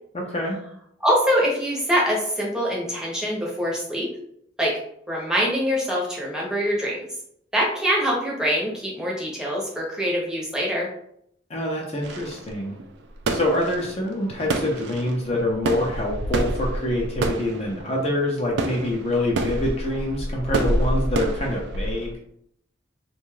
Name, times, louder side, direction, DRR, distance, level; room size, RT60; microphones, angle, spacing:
voice 1, 0.1-0.6 11.5-12.7 13.3-22.1, left 1 dB, 35° left, -1 dB, 0.5 m, -25 dB
voice 2, 1.0-4.1 4.6-4.7 5.1-7.0 7.5-10.9, equal, 5° right, -4 dB, 0.7 m, -24 dB
sound 1, 12.0-22.1, right 2 dB, 70° right, 0.3 m, -28 dB
2.6 x 2.2 x 3.1 m, 0.71 s
head